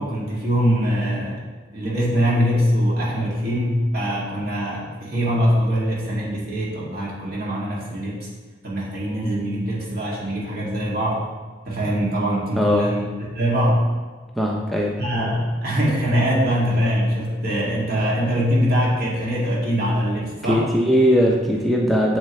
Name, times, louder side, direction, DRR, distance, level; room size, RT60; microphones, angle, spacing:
voice 1, 0.0-1.4 1.7-8.3 8.6-11.3 11.7-13.0 13.3-13.8 15.0-20.6, equal, 55° right, -5 dB, 2.3 m, -22 dB
voice 2, 12.6-12.9 14.4-14.9 20.5-22.2, equal, ahead, -2 dB, 0.6 m, -19 dB
7.8 x 7.5 x 3.1 m, 1.4 s
head